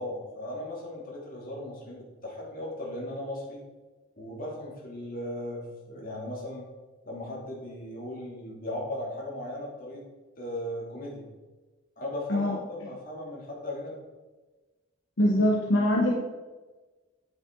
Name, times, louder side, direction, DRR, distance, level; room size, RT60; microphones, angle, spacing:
voice 1, 0.0-3.6 4.2-6.7 7.0-10.0 10.4-11.3 12.0-13.9, left 1 dB, 45° left, -3 dB, 2.8 m, -37 dB
voice 2, 15.2-16.1, left 1 dB, 70° left, -2 dB, 1.2 m, -23 dB
8.4 x 8.4 x 3.9 m, 1.2 s
head